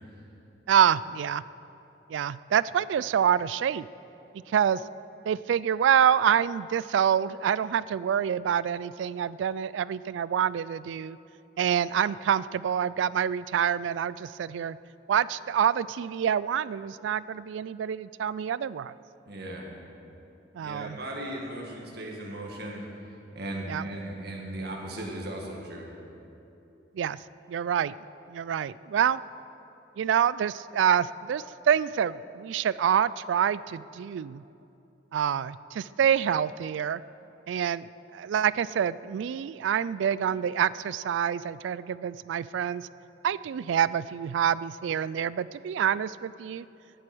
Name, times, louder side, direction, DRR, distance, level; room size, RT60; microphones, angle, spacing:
voice 1, 0.7-1.4 2.1-3.9 4.5-4.8 5.3-11.2 11.6-14.8 15.1-18.9 20.5-21.0 23.7-23.8 27.0-27.2 27.5-27.9 28.3-29.2 30.0-34.4 35.1-37.0 37.5-42.9 43.2-46.6, right 8 dB, 80° right, 19 dB, 0.3 m, -26 dB
voice 2, 19.3-19.7 20.6-22.8 23.3-25.9, right 1 dB, 60° right, -1 dB, 2.0 m, -37 dB
17.0 x 7.6 x 6.2 m, 2.9 s
head